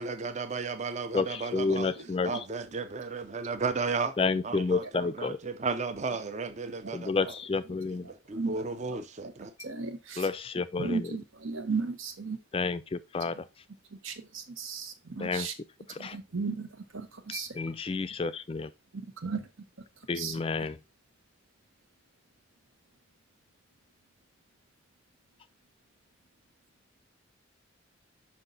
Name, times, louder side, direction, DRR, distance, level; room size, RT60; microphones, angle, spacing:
voice 1, 0.0-1.9 2.2-4.1 4.4-7.1 8.3-9.5, right 4 dB, 35° right, 0.5 m, -34 dB
voice 2, 1.1-2.5 4.2-5.4 6.9-8.1 10.2-11.1 12.5-13.4 15.2-15.5 15.9-16.2 17.3-18.7 20.1-20.8, left 4 dB, 25° left, 0.3 m, -30 dB
voice 3, 8.3-9.3 9.6-10.2 10.8-12.4 14.0-15.5 16.0-17.5 18.9-19.5 20.2-20.3, right 4 dB, 80° right, 1.2 m, -35 dB
5.9 x 5.3 x 3.9 m
head